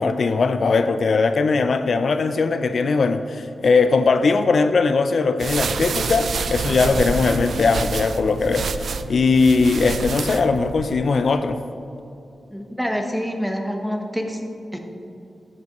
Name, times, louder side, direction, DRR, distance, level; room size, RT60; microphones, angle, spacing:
voice 1, 0.0-11.6, left 4 dB, 65° left, 9 dB, 0.3 m, -20 dB
sound 1, 5.4-11.0, right 5 dB, 80° right, 0.3 m, -28 dB
voice 2, 12.5-14.4 14.7-14.8, equal, ahead, 3 dB, 0.8 m, -26 dB
9.2 x 7.6 x 2.9 m, 2.8 s
wide cardioid pair, 95°, 0 cm